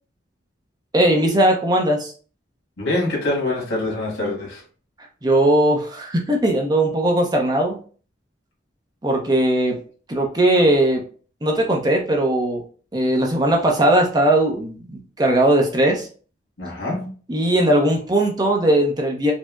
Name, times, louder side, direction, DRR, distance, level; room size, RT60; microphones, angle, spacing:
voice 1, 0.9-2.1 5.2-7.8 9.0-9.8 10.1-11.0 11.4-12.6 12.9-16.1 17.3-19.3, right 1 dB, 20° right, 1 dB, 0.5 m, -19 dB
voice 2, 2.8-4.6 16.6-17.1, left 2 dB, 90° left, -2 dB, 1.6 m, -25 dB
4.3 x 2.0 x 2.3 m, 0.40 s
head